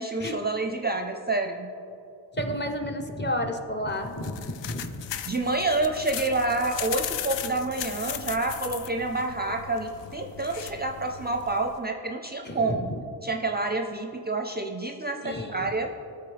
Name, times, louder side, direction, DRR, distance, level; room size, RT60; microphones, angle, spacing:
voice 1, 0.0-1.7 5.3-12.9 13.2-15.9, right 2 dB, 25° right, 3 dB, 0.5 m, -28 dB
voice 2, 2.3-5.0 12.4-12.9 15.2-15.7, equal, 25° left, 3 dB, 0.8 m, -31 dB
sound 1, 3.9-11.8, left 10 dB, 80° left, 0.5 m, -37 dB
13.0 x 4.5 x 3.4 m, 2.7 s
cardioid pair, 65°, 43 cm